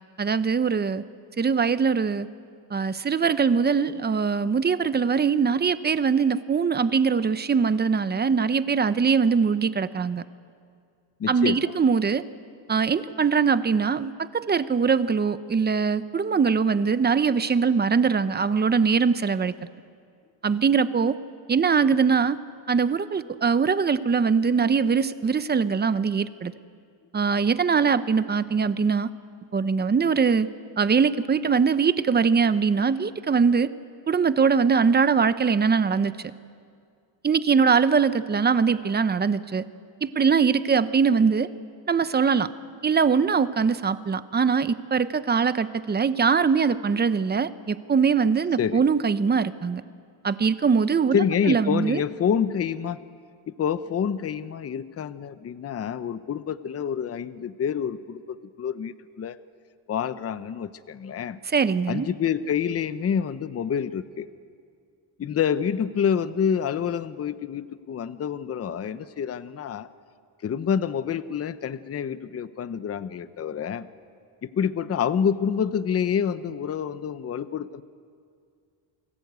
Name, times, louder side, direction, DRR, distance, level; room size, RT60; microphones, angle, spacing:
voice 1, 0.2-1.0 1.4-2.3 2.7-10.2 11.3-12.2 12.7-19.5 20.4-21.2 21.5-22.4 22.7-26.5 27.1-29.1 29.5-30.5 30.8-33.7 34.1-36.1 37.2-39.6 40.0-41.5 41.9-42.5 42.8-49.8 50.2-51.2 51.5-52.0 61.5-62.1, right 5 dB, 20° right, 13 dB, 0.7 m, -22 dB
voice 2, 11.2-11.7 48.6-48.8 51.1-53.0 53.5-59.4 59.9-61.4 61.9-64.3 65.2-69.9 70.4-73.9 74.4-77.8, left 7 dB, 30° left, 14 dB, 0.8 m, -27 dB
28.5 x 20.5 x 8.2 m, 2.2 s
cardioid pair, 140°, 46 cm